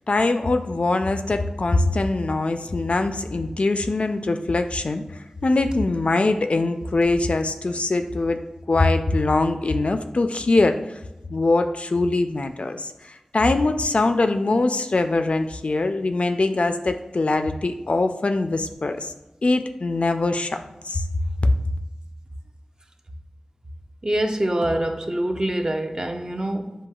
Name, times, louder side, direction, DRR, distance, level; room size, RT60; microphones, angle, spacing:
voice 1, 0.1-8.4 8.7-11.0 11.3-19.1 19.4-21.1 21.4-21.5, left 2 dB, 60° left, 7 dB, 0.3 m, -22 dB
voice 2, 24.0-26.7, right 1 dB, 35° right, 4 dB, 0.5 m, -25 dB
7.0 x 2.7 x 2.3 m, 1.0 s
wide cardioid pair, 45°, 2 cm